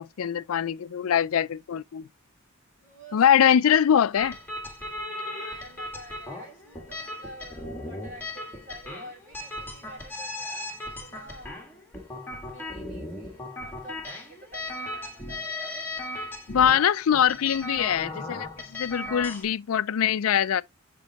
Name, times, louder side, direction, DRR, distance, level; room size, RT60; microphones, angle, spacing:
voice 1, 0.0-2.1 3.1-4.4 16.5-20.6, left 9 dB, 80° left, 0.4 m, -23 dB
voice 2, 2.8-3.2 5.3-11.9 12.5-15.8, right 1 dB, 35° right, 5.4 m, -48 dB
sound 1, 4.2-19.4, left 1 dB, 10° left, 1.7 m, -37 dB
7.2 x 5.3 x 2.9 m
head